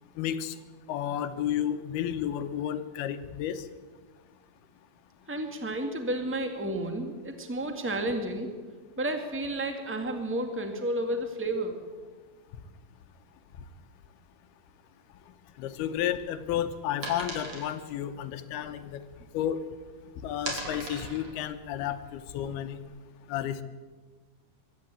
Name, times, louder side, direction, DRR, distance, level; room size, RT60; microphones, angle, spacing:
voice 1, 0.2-0.6 0.9-3.7 15.6-19.0 19.3-19.6 20.2-22.8 23.3-23.6, left 10 dB, 85° left, 10 dB, 3.0 m, -32 dB
voice 2, 5.3-8.5 9.0-11.8, right 1 dB, 10° right, 5 dB, 0.7 m, -31 dB
sound 1, 15.8-19.8 20.1-22.8, right 2 dB, 40° right, 4.1 m, -40 dB
23.5 x 12.5 x 9.1 m, 1.4 s
omnidirectional pair, 4.4 m